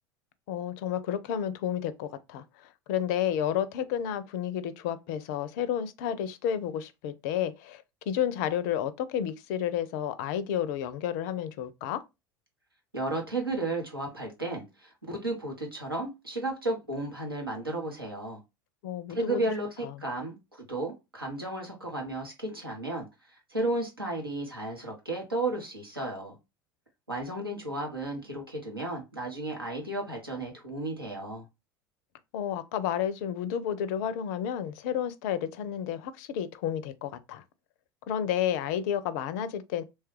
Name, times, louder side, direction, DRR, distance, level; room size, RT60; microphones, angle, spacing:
voice 1, 0.5-12.0 18.8-19.4 19.8-19.9 32.3-37.4 38.1-39.8, left 9 dB, 50° left, 0.4 m, -31 dB
voice 2, 12.9-18.4 19.1-23.1 23.5-26.3 27.1-31.4, right 2 dB, 90° right, 0.9 m, -33 dB
3.0 x 2.3 x 3.0 m
figure-of-eight pair, 75°, 12 cm